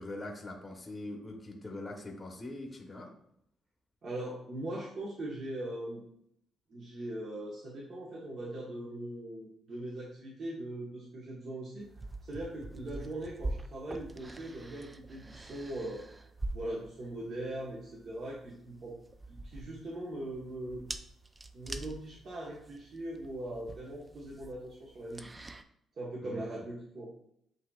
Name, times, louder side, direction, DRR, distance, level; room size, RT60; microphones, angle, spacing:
voice 1, 0.0-3.1 26.2-26.4, left 2 dB, 20° left, 1 dB, 0.9 m, -42 dB
voice 2, 4.0-6.0 6.7-11.9 12.2-16.0 16.5-18.9 19.3-20.8 21.5-25.3 26.0-27.1, right 1 dB, 55° right, -5 dB, 1.2 m, -40 dB
sound 1, 11.8-25.6, right 2 dB, 20° right, 0.4 m, -44 dB
7.9 x 2.8 x 2.3 m, 0.71 s
cardioid pair, 90°, 0 cm